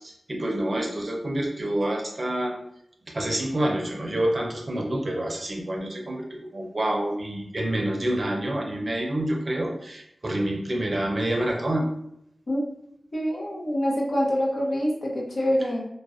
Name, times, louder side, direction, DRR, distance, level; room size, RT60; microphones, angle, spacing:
voice 1, 0.0-2.6 3.1-11.9, right 1 dB, 50° right, 0 dB, 0.5 m, -27 dB
voice 2, 13.1-15.9, equal, 65° left, -3 dB, 0.7 m, -25 dB
2.3 x 2.1 x 2.4 m, 0.75 s
cardioid pair, 50°, 0 cm